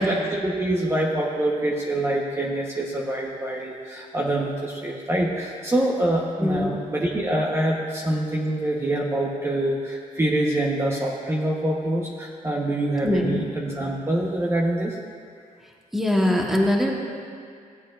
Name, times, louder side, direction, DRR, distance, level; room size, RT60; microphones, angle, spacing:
voice 1, 0.0-15.0, right 1 dB, 20° right, -3 dB, 1.0 m, -25 dB
voice 2, 6.4-6.8 13.0-13.4 15.9-17.0, left 1 dB, ahead, -1 dB, 1.2 m, -22 dB
16.0 x 8.0 x 2.5 m, 2.3 s
cardioid pair, 100°, 14 cm